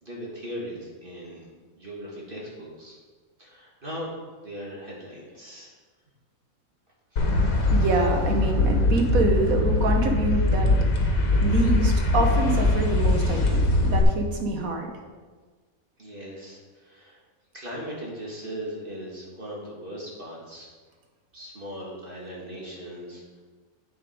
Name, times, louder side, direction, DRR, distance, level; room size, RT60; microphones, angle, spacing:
voice 1, 0.0-1.5 1.7-3.0 3.4-4.1 4.4-5.7 7.1-7.3 16.0-17.2 17.5-20.7 21.3-23.4, equal, 40° right, -4 dB, 2.1 m, -38 dB
sound 1, 7.2-14.0, left 2 dB, 70° left, 1.7 m, -22 dB
voice 2, 7.7-14.9, right 2 dB, 75° right, 3 dB, 1.6 m, -26 dB
8.3 x 7.1 x 5.1 m, 1.4 s
omnidirectional pair, 1.5 m